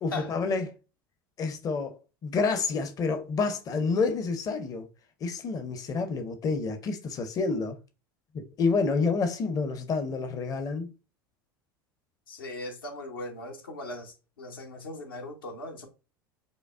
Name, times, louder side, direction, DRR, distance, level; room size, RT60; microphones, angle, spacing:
voice 1, 0.0-0.7 1.4-4.9 5.2-7.8 8.3-10.9, left 4 dB, 30° left, 0.6 m, -29 dB
voice 2, 12.3-15.9, left 2 dB, 80° left, 0.9 m, -39 dB
5.1 x 2.1 x 2.4 m
hypercardioid pair, 80°, 12 cm